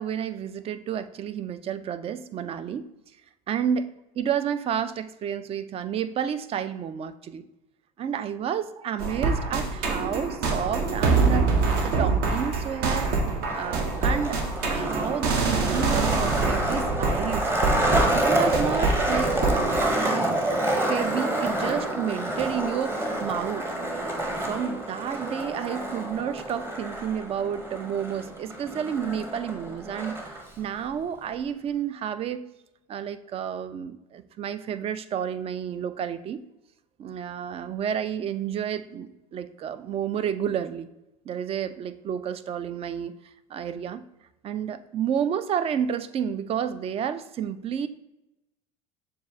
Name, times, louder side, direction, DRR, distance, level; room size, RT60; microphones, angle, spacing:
voice 1, 0.0-2.9 3.5-3.9 4.2-7.4 8.0-11.5 11.8-13.1 13.5-14.4 14.7-17.5 18.1-23.7 24.2-30.2 30.6-32.4 32.9-36.4 37.0-40.9 41.3-43.1 43.5-44.0 44.4-47.9, right 8 dB, 35° right, 12 dB, 0.3 m, -30 dB
sound 1, 9.0-19.9, right 3 dB, 55° right, 0.8 m, -25 dB
Skateboard, 13.4-30.4, right 1 dB, 15° right, 0.8 m, -28 dB
6.7 x 2.4 x 2.7 m, 0.92 s
hypercardioid pair, 85°, 18 cm